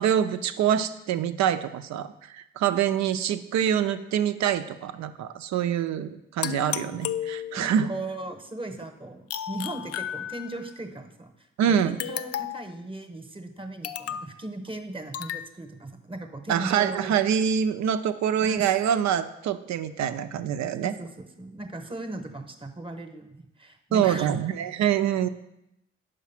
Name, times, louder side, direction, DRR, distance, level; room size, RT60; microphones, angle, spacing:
voice 1, 0.0-2.1 2.3-7.9 11.6-12.0 16.5-20.9 23.9-25.3, right 9 dB, 70° right, 11 dB, 0.5 m, -25 dB
sound 1, 6.4-7.8 9.3-10.7 12.0-12.8 13.8-14.4 15.1-15.5, left 10 dB, 55° left, 0.4 m, -33 dB
voice 2, 7.6-11.3 11.6-17.1 18.4-18.6 20.8-24.4, right 2 dB, 20° right, 7 dB, 1.0 m, -37 dB
5.1 x 4.9 x 5.8 m, 0.85 s
supercardioid pair, 55°, 29 cm